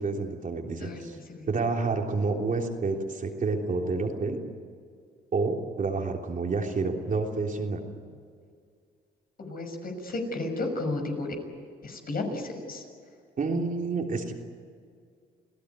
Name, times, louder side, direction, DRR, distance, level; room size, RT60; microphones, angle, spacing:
voice 1, 0.0-1.2 1.5-4.4 5.3-7.8 13.4-14.3, right 3 dB, 40° right, 1 dB, 3.3 m, -29 dB
voice 2, 9.4-11.3 11.8-12.8, left 2 dB, 50° left, 4 dB, 6.3 m, -33 dB
28.5 x 16.5 x 9.5 m, 2.2 s
cardioid pair, 90°, 20 cm